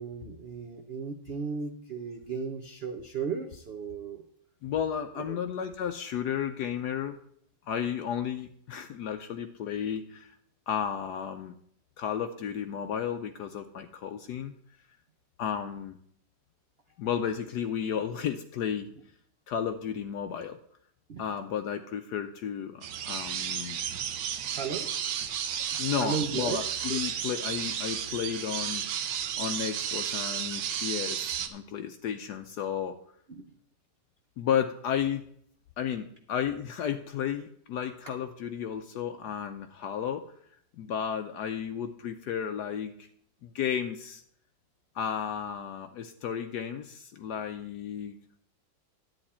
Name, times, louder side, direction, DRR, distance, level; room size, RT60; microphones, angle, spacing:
voice 1, 0.0-4.2 5.2-5.4 21.1-21.2 24.5-24.9 25.7-26.6 26.9-27.2 33.3-33.4, right 5 dB, 55° right, 5 dB, 0.7 m, -35 dB
voice 2, 4.6-7.2 7.7-10.3 10.7-11.5 12.0-14.5 15.4-16.0 17.0-18.9 19.5-20.6 21.2-23.8 25.8-33.0 34.4-35.2 35.8-40.3 40.8-43.1 43.4-44.2 44.9-48.2, left 8 dB, 70° left, 7 dB, 1.1 m, -33 dB
sound 1, 22.8-31.5, right 9 dB, 80° right, 1.5 m, -33 dB
10.5 x 8.6 x 4.2 m, 0.66 s
omnidirectional pair, 1.9 m